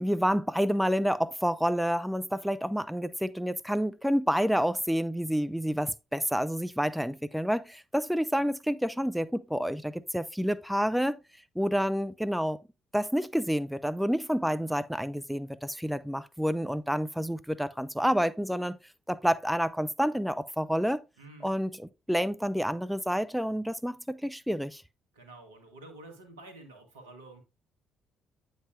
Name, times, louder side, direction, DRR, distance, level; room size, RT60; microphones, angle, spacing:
voice 1, 0.0-11.2 11.6-12.6 12.9-18.8 19.1-21.0 21.4-24.8, equal, ahead, 0.4 m, -29 dB
voice 2, 21.2-21.5 25.1-27.4, right 2 dB, 80° right, 1.2 m, -49 dB
8.5 x 5.5 x 2.5 m
figure-of-eight pair, 45°, 0 cm